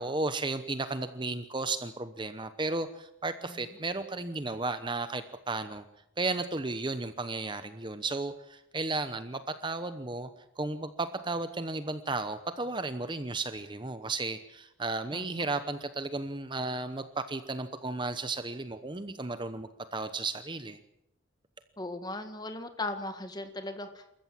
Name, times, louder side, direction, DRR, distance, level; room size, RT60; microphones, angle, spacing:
voice 1, 0.0-5.8 6.2-10.3 10.6-20.8, right 3 dB, 25° right, 10 dB, 0.9 m, -34 dB
voice 2, 15.1-15.5 21.8-24.0, left 2 dB, 20° left, 8 dB, 1.7 m, -38 dB
28.0 x 14.5 x 7.6 m, 0.83 s
head